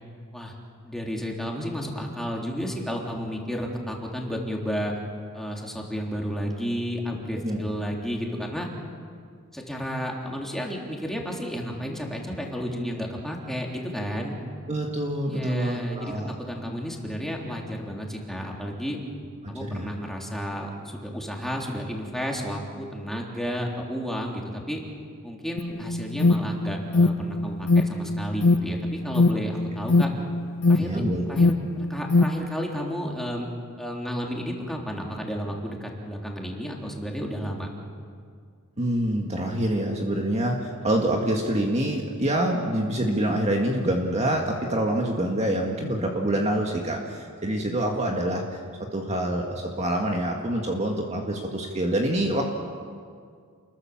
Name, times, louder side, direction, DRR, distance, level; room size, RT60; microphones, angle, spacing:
voice 1, 0.8-4.9 5.3-8.7 9.5-14.4 15.3-16.1 16.4-19.0 19.5-24.8 25.2-30.1 30.7-33.5 33.8-37.7, equal, ahead, -1 dB, 3.4 m, -32 dB
voice 2, 7.4-7.8 14.7-16.3 19.4-20.0 30.8-31.2 38.8-48.6 48.9-52.4, right 1 dB, 30° right, 1 dB, 2.0 m, -26 dB
Alarm, 25.6-32.3, left 3 dB, 65° left, 0.9 m, -22 dB
29.0 x 21.5 x 7.3 m, 2.1 s
head